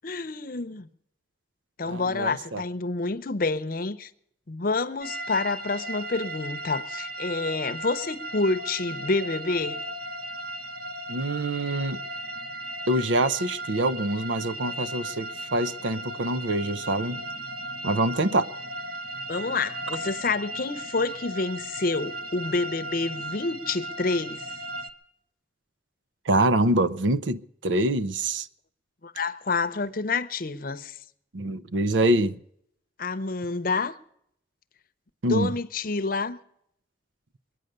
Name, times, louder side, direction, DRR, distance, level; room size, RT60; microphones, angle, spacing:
voice 1, 0.0-0.9 1.8-4.1 4.5-9.8 19.3-24.4 29.0-31.0 33.0-33.9 35.3-36.4, left 3 dB, 50° left, 0.7 m, -28 dB
voice 2, 1.8-2.6 11.1-12.0 12.9-17.2 17.8-18.5 26.3-28.5 31.3-32.4 35.2-35.5, right 1 dB, 90° right, 0.7 m, -25 dB
sound 1, 5.0-24.9, right 1 dB, 55° right, 1.1 m, -36 dB
22.0 x 9.3 x 6.7 m
head